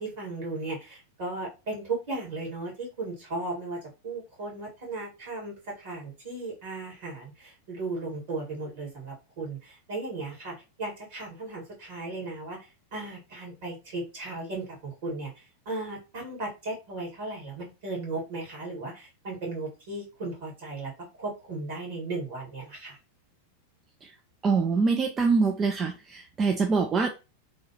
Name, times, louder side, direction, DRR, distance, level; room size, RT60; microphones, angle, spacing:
voice 1, 0.0-20.9 21.2-23.0, right 2 dB, 50° right, -2 dB, 1.9 m, -36 dB
voice 2, 24.4-27.1, right 4 dB, 25° right, 4 dB, 0.4 m, -24 dB
3.0 x 2.3 x 3.0 m, 0.28 s
figure-of-eight pair, 90°, 0 cm